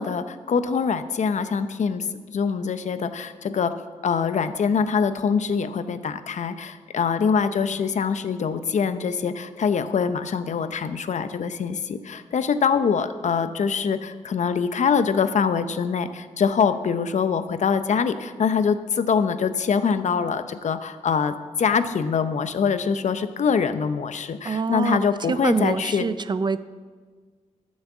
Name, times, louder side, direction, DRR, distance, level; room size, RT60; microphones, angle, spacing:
voice 1, 0.0-2.1 2.3-3.7 4.0-26.1, left 6 dB, 65° left, 11 dB, 0.7 m, -24 dB
voice 2, 24.4-25.0 25.3-26.6, right 4 dB, 35° right, 14 dB, 0.4 m, -25 dB
13.5 x 6.3 x 7.3 m, 1.6 s
wide cardioid pair, 150°, 13 cm